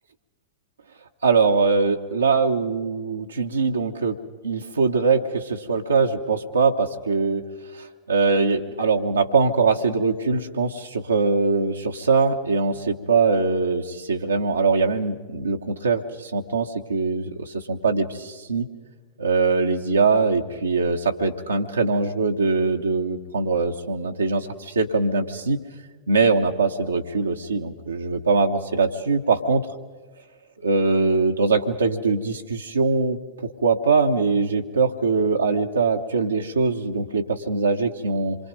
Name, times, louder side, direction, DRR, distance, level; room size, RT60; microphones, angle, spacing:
voice 1, 1.2-4.2 4.4-7.4 7.7-18.7 19.2-25.6 26.1-29.7 30.6-38.4, right 4 dB, 75° right, 1 dB, 1.2 m, -22 dB
27.0 x 23.5 x 5.3 m, 1.3 s
figure-of-eight pair, 90°, 0 cm